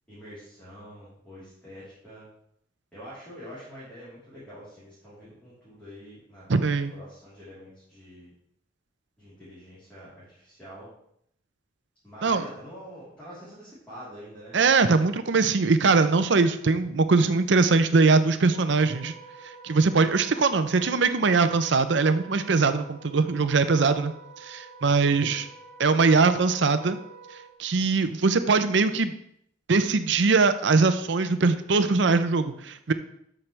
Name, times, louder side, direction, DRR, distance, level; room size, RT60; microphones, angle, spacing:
voice 1, 0.1-2.3 2.9-8.3 9.2-10.9 12.0-14.6 25.0-25.5, equal, 5° left, -12 dB, 3.5 m, -46 dB
voice 2, 6.5-6.9 12.2-12.4 14.5-19.1 19.6-24.1 24.4-25.5 25.8-27.0 27.6-29.1 29.7-32.9, right 4 dB, 65° right, 10 dB, 0.6 m, -21 dB
Wind instrument woodwind instrument, 18.5-27.5, right 3 dB, 30° right, 1.0 m, -48 dB
13.0 x 5.9 x 3.3 m, 0.72 s
head